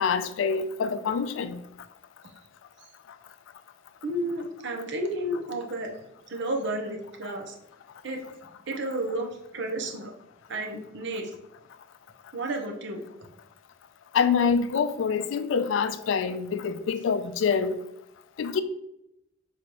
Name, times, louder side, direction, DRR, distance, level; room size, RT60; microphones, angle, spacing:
voice 1, 0.0-1.6 14.1-17.8 18.4-18.6, left 6 dB, 70° left, 0.3 m, -26 dB
voice 2, 4.0-5.9 6.3-7.6 8.0-8.2 8.7-10.1 10.5-11.4 12.3-13.0 14.2-14.3, right 1 dB, 65° right, 0.7 m, -32 dB
3.9 x 2.9 x 4.6 m
head